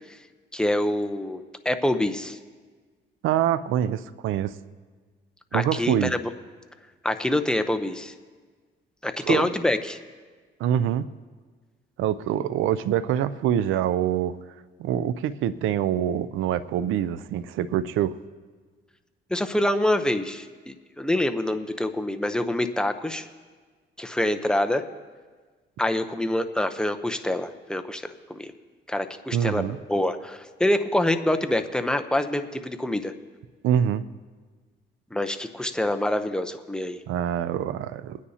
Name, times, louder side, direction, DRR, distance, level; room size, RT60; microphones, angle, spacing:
voice 1, 0.5-2.4 5.5-6.2 7.0-8.1 9.0-10.0 19.3-23.3 24.0-24.8 25.8-28.5 28.9-33.1 35.1-37.0, left 1 dB, 5° left, 7 dB, 0.8 m, -26 dB
voice 2, 3.2-4.5 5.5-6.1 9.2-9.5 10.6-11.1 12.0-14.4 14.8-18.2 29.3-29.8 33.6-34.0 37.1-38.2, right 10 dB, 85° right, 15 dB, 0.5 m, -25 dB
22.0 x 9.7 x 2.8 m, 1.5 s
cardioid pair, 90°, 20 cm